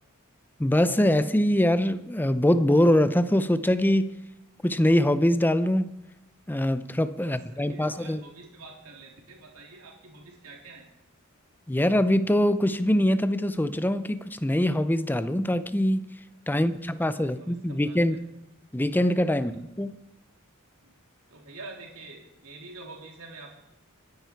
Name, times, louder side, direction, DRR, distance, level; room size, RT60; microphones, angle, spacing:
voice 1, 0.6-4.1 4.6-5.9 6.5-8.2 11.7-16.1 16.5-18.2 18.7-20.0, left 1 dB, 10° left, 0.6 m, -23 dB
voice 2, 7.2-10.9 16.5-18.2 19.3-19.5 20.8-20.9 21.3-23.6, right 3 dB, 85° right, 3.5 m, -47 dB
25.0 x 10.5 x 4.6 m
head